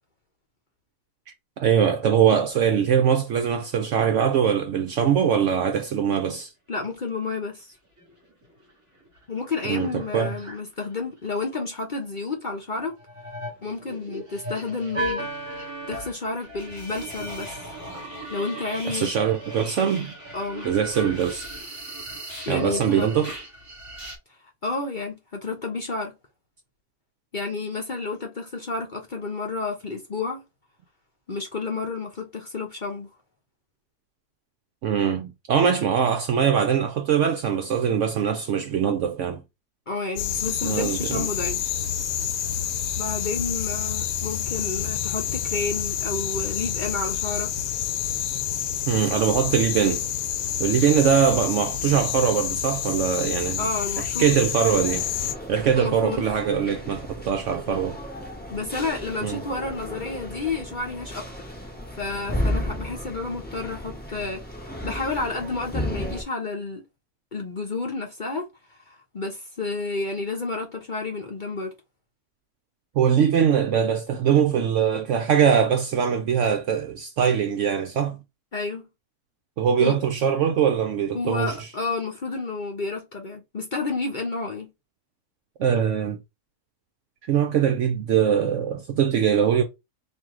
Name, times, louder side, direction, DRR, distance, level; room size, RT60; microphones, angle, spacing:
voice 1, 1.6-6.5 9.6-10.3 18.8-20.1 20.6-21.5 22.5-23.3 34.8-39.4 40.6-41.3 48.9-50.0 50.6-53.7 54.0-55.1 55.5-58.0 59.2-59.4 72.9-78.2 79.6-81.7 85.6-86.2 87.3-89.6, right 8 dB, 70° right, 0.7 m, -22 dB
voice 2, 6.7-7.7 9.3-13.0 13.6-15.3 15.9-17.7 18.3-19.1 20.3-20.7 22.5-23.1 24.6-26.1 27.3-30.4 31.3-33.1 39.9-41.6 43.0-47.5 52.8-52.9 53.6-54.4 55.8-56.4 56.8-57.0 58.5-61.3 62.0-66.8 67.3-68.5 68.9-71.7 78.5-78.9 79.8-80.0 81.1-84.7, left 3 dB, 40° left, 0.7 m, -30 dB
sound 1, 8.0-8.4 8.7-8.8 9.1-10.9 12.9-24.2, right 1 dB, 20° right, 1.8 m, -36 dB
sound 2, 40.2-55.3, left 9 dB, 75° left, 1.0 m, -28 dB
sound 3, 54.7-66.2, equal, 10° left, 0.9 m, -34 dB
4.5 x 2.7 x 3.7 m
omnidirectional pair, 1.6 m